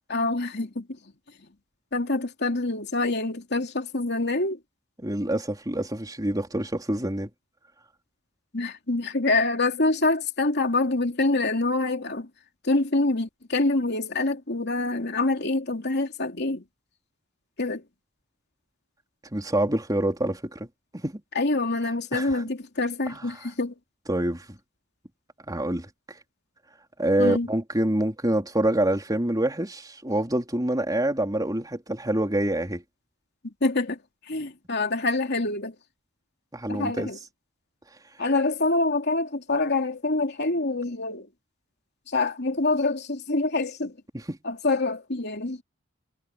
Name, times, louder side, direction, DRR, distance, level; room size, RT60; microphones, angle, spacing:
voice 1, 0.1-0.9 1.9-4.6 8.5-12.3 12.6-16.6 17.6-17.8 21.3-23.7 27.2-27.5 33.6-34.0 34.3-35.8 36.7-37.2 38.2-41.3 42.1-43.9 44.4-45.6, left 2 dB, 55° left, 3.0 m, -26 dB
voice 2, 5.0-7.3 19.3-20.7 21.0-21.2 22.1-22.4 23.1-23.3 24.1-24.5 25.5-25.9 27.0-32.8 36.5-37.1 44.3-44.4, right 1 dB, 20° right, 3.9 m, -26 dB
head